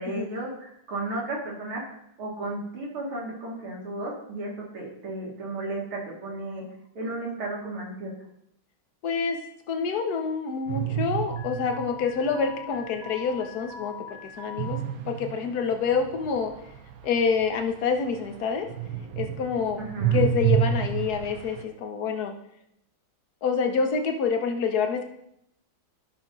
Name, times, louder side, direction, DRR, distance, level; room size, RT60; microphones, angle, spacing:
voice 1, 0.0-6.6 6.9-8.1 19.8-20.2, right 2 dB, 80° right, -3 dB, 3.4 m, -34 dB
voice 2, 9.0-9.4 9.7-13.9 14.2-14.8 15.1-16.5 17.0-18.7 19.2-19.8 20.1-22.3 23.4-25.0, left 5 dB, 55° left, 5 dB, 1.3 m, -27 dB
sound 1, 10.7-12.3 14.6-18.4 18.7-21.6, right 9 dB, 55° right, 1.0 m, -29 dB
Alarm, 11.3-14.8, left 6 dB, 40° right, 1.3 m, -41 dB
12.0 x 6.0 x 3.9 m, 0.77 s
omnidirectional pair, 2.3 m